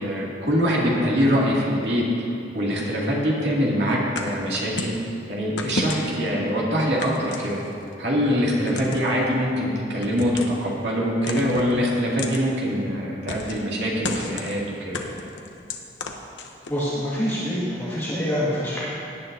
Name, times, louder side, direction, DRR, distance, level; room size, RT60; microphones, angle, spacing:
voice 1, 0.0-2.2 2.5-4.9 5.3-7.6 8.0-15.1, equal, 70° right, -5 dB, 2.4 m, -23 dB
sound 1, 4.2-5.0 5.6-6.3 7.0-7.9 8.7-9.1 10.0-10.6 11.2-11.7 12.2-12.4 13.3-13.7 14.0-14.6 14.9-16.8, left 3 dB, 80° left, 0.9 m, -32 dB
voice 2, 16.7-18.8, equal, 15° left, -10 dB, 2.0 m, -26 dB
17.0 x 9.6 x 2.7 m, 2.6 s
head